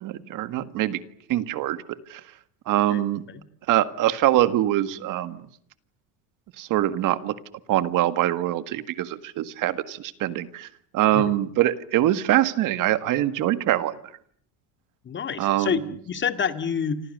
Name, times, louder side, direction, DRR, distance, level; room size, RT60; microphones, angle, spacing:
voice 1, 0.0-1.0 1.3-1.8 2.1-2.2 2.7-3.2 3.7-5.4 6.6-7.3 7.7-10.7 10.9-13.9 15.4-15.8, right 13 dB, 60° right, 12 dB, 1.8 m, -23 dB
voice 2, 2.9-3.4 11.1-11.3 15.0-17.0, left 7 dB, 30° left, 9 dB, 2.0 m, -28 dB
29.5 x 25.5 x 6.7 m, 0.62 s
cardioid pair, 120°, 37 cm